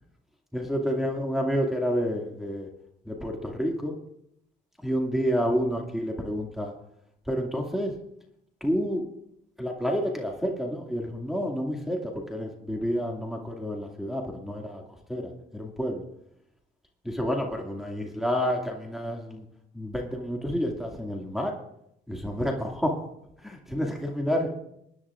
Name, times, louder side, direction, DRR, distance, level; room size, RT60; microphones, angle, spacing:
voice 1, 0.5-2.7 3.1-4.0 4.8-6.7 7.3-7.9 8.6-9.1 9.6-14.8 15.1-16.0 17.0-19.4 19.7-21.5 22.1-23.0 23.4-24.5, equal, ahead, 0 dB, 2.2 m, -29 dB
23.5 x 10.5 x 2.5 m, 0.77 s
cardioid pair, 90°, 20 cm